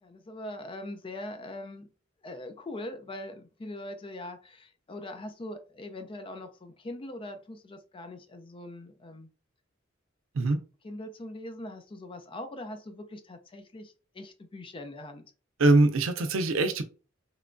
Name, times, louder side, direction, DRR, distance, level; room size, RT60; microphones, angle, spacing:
voice 1, 0.0-1.9 2.2-9.3 10.8-15.3, left 1 dB, 25° left, 0.4 m, -42 dB
voice 2, 15.6-16.8, right 2 dB, 80° right, 0.5 m, -22 dB
3.0 x 2.2 x 2.5 m
head